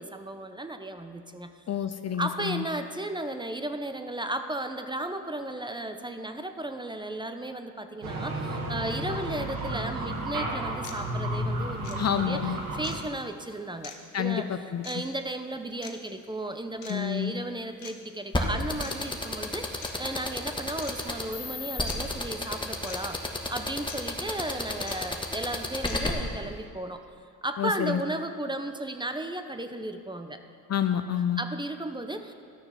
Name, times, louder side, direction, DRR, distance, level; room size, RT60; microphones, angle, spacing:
voice 1, 0.0-1.6 2.2-23.2 23.5-27.0 27.4-30.4 31.4-32.3, right 1 dB, 10° right, 8 dB, 0.7 m, -35 dB
voice 2, 1.7-2.6 12.0-12.6 14.1-14.8 16.9-17.3 27.6-28.0 30.7-31.4, left 9 dB, 40° left, 9 dB, 0.5 m, -28 dB
sound 1, 8.0-13.0, right 1 dB, 60° right, 1.6 m, -32 dB
sound 2, 10.1-10.2 10.8-11.0 11.8-12.0 12.8-13.0 13.8-14.0 14.8-15.0 15.8-15.9 16.8-17.0 17.8-17.9 18.8-18.9 19.8-20.0 20.8-20.9 21.9-22.0 22.9-23.0 23.9-24.0 24.9-25.0 25.9-26.0, left 9 dB, 90° left, 1.0 m, -43 dB
sound 3, 18.3-26.1, left 2 dB, 10° left, 1.4 m, -30 dB
12.0 x 6.7 x 5.7 m, 2.2 s
supercardioid pair, 65°, 39 cm